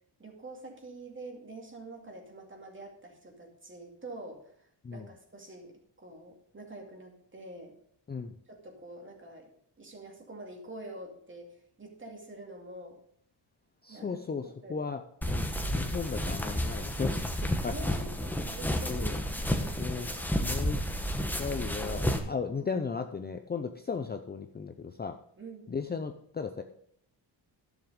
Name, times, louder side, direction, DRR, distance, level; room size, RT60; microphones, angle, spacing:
voice 1, 0.2-7.7 8.5-9.5 9.8-13.0 13.9-14.8 16.1-16.2 17.7-19.2 19.6-20.2 25.4-25.7, right 2 dB, 25° right, 2 dB, 2.4 m, -46 dB
voice 2, 13.8-17.8 18.9-19.2 19.8-20.1 20.4-20.8 21.4-25.2 25.7-26.6, left 5 dB, 25° left, 7 dB, 0.5 m, -36 dB
sound 1, 15.2-22.2, equal, 5° left, 1.1 m, -31 dB
11.0 x 7.2 x 5.2 m, 0.66 s
wide cardioid pair, 120°, 44 cm